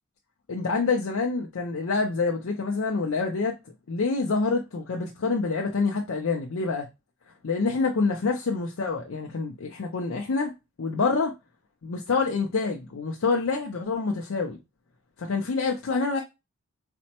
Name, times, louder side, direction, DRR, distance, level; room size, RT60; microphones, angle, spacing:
voice 1, 0.5-3.6 3.9-6.9 7.4-10.5 10.8-11.3 11.8-14.6 15.2-16.2, left 4 dB, 70° left, 0.5 m, -27 dB
4.1 x 2.1 x 2.8 m
head